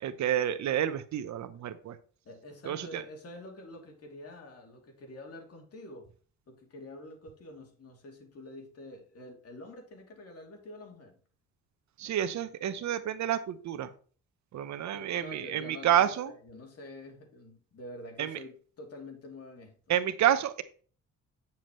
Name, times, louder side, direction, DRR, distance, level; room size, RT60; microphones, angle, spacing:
voice 1, 0.0-2.0 2.6-3.0 12.0-13.9 14.5-16.3 18.2-18.4 19.9-20.6, right 10 dB, 70° right, 12 dB, 0.9 m, -29 dB
voice 2, 2.2-6.1 6.5-11.2 14.9-19.8, left 1 dB, 50° left, 2 dB, 3.0 m, -47 dB
8.8 x 7.2 x 3.2 m, 0.41 s
cardioid pair, 90°, 30 cm